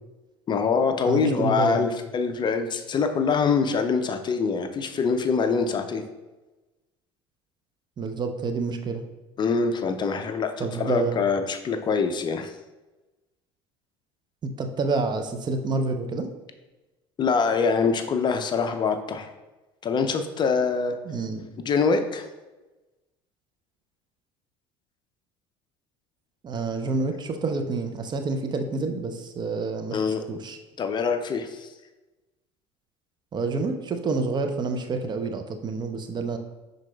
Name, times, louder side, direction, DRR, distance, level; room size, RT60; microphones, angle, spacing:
voice 1, 0.5-6.0 9.4-12.5 17.2-19.3 19.8-20.9 21.6-22.2 29.9-30.2 30.8-31.7, left 5 dB, 35° left, 7 dB, 0.5 m, -24 dB
voice 2, 1.1-1.9 8.0-9.0 10.6-11.1 14.4-16.3 21.0-21.4 26.4-30.0 30.3-30.6 33.3-36.4, right 4 dB, 35° right, 6 dB, 0.5 m, -28 dB
6.0 x 3.9 x 2.3 m, 1.1 s
hypercardioid pair, 70°, 14 cm